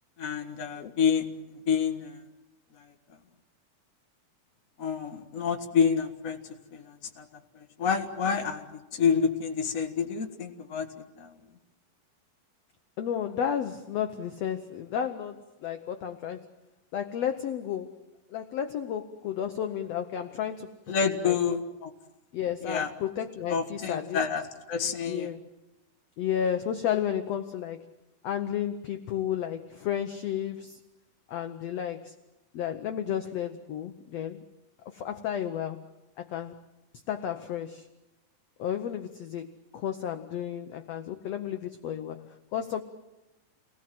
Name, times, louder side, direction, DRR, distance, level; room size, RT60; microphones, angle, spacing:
voice 1, 0.2-1.3 1.7-2.2 4.8-6.4 6.7-7.2 7.5-8.7 8.9-10.9 11.2-11.3 20.9-21.9 22.6-22.9 23.5-25.3, left 6 dB, 35° left, 3 dB, 1.4 m, -28 dB
voice 2, 13.0-16.5 16.9-18.0 18.3-21.3 22.3-24.2 25.1-25.4 26.2-27.8 28.2-30.8 31.3-32.1 32.5-34.4 34.8-35.9 36.2-36.6 37.1-37.9 38.6-42.8, left 9 dB, 70° left, 7 dB, 1.5 m, -32 dB
29.0 x 19.5 x 7.7 m, 1.0 s
omnidirectional pair, 4.1 m